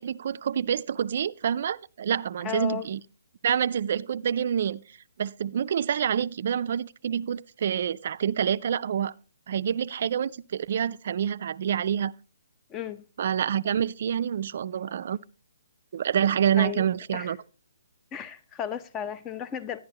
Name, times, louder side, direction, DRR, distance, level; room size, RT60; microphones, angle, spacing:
voice 1, 0.0-3.0 3.4-4.8 5.2-9.1 9.5-12.1 13.2-15.2 15.9-17.4, right 8 dB, 55° right, 0.4 m, -27 dB
voice 2, 2.4-2.9 12.7-13.0 16.6-16.9 17.1-17.3 18.1-19.8, left 9 dB, 20° left, 0.7 m, -34 dB
12.0 x 10.5 x 2.9 m
hypercardioid pair, 140°, 0 cm